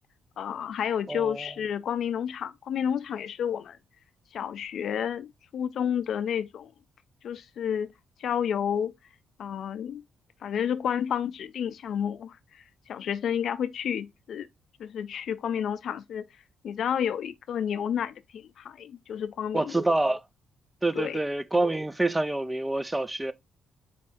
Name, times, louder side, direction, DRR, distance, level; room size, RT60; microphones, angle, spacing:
voice 1, 0.4-3.8 4.3-6.7 7.2-7.9 8.2-8.9 9.4-10.0 10.4-14.5 14.8-16.3 16.6-19.8 20.9-21.2, left 8 dB, 65° left, 0.4 m, -30 dB
voice 2, 1.1-1.5 19.5-20.2 20.8-23.3, right 2 dB, 10° right, 0.3 m, -27 dB
4.3 x 2.5 x 3.5 m
cardioid pair, 90°, 0 cm